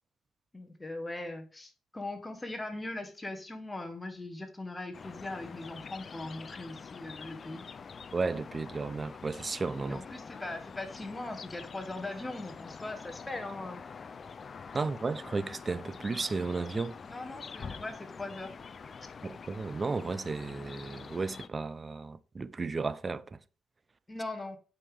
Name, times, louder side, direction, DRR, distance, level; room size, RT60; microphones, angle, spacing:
voice 1, 0.5-7.6 9.9-13.8 17.1-18.5 19.0-19.1 24.1-24.6, left 2 dB, 15° left, 1.5 m, -40 dB
sound 1, 4.9-21.5, left 5 dB, 40° left, 0.5 m, -46 dB
voice 2, 8.1-10.0 14.7-17.0 19.2-23.4, right 4 dB, 30° right, 0.5 m, -34 dB
8.4 x 5.1 x 3.6 m
cardioid pair, 90°, 0 cm